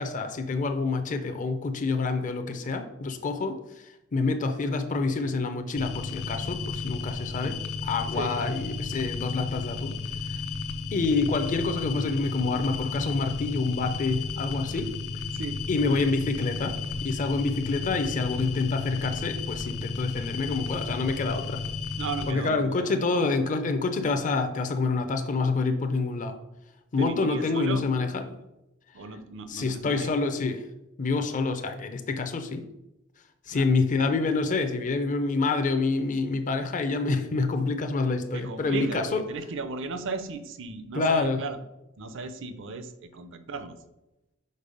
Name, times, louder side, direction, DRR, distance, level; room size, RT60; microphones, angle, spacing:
voice 1, 0.0-7.6 7.8-10.4 10.9-14.9 15.7-21.6 22.3-26.4 26.9-28.3 29.5-30.7 31.0-32.6 33.5-39.2 40.9-41.4, left 3 dB, 40° left, 6 dB, 0.5 m, -27 dB
sound 1, 5.8-22.3, left 4 dB, 90° left, 0.7 m, -33 dB
voice 2, 15.3-15.6 22.0-23.0 27.0-27.8 28.9-30.1 33.5-33.7 38.3-41.6 42.0-43.7, right 4 dB, 65° right, 11 dB, 0.6 m, -36 dB
5.4 x 4.5 x 5.2 m, 0.93 s
head